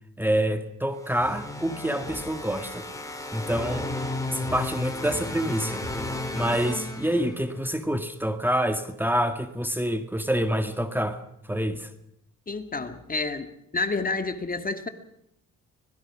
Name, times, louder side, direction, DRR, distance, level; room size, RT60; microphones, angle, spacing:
voice 1, 0.2-2.8 3.3-3.9 4.3-5.8 6.3-11.2 11.5-11.9, equal, 5° right, 1.9 m, -27 dB
sound 1, 1.0-7.7, left 2 dB, 10° left, 4.7 m, -34 dB
voice 2, 12.5-13.5 13.7-14.9, left 3 dB, 30° left, 2.1 m, -29 dB
25.0 x 20.5 x 6.2 m
cardioid pair, 90°, 30 cm